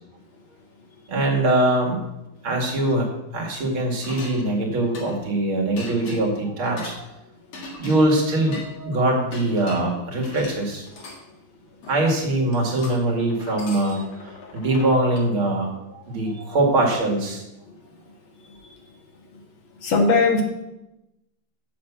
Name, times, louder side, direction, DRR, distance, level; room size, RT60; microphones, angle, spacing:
voice 1, 1.1-2.0 2.4-7.1 7.8-10.9 11.9-14.0 14.5-17.4, right 1 dB, 70° right, -1 dB, 3.1 m, -22 dB
sound 1, 4.0-5.3 5.8-7.0 7.5-8.7 9.3-11.2 11.8-12.2 12.5-15.3, left 2 dB, 90° left, 2.9 m, -40 dB
voice 2, 18.4-18.8 19.2-19.4 19.8-20.4, left 3 dB, 65° left, 2 dB, 2.4 m, -22 dB
7.3 x 7.3 x 8.2 m, 0.91 s
omnidirectional pair, 2.3 m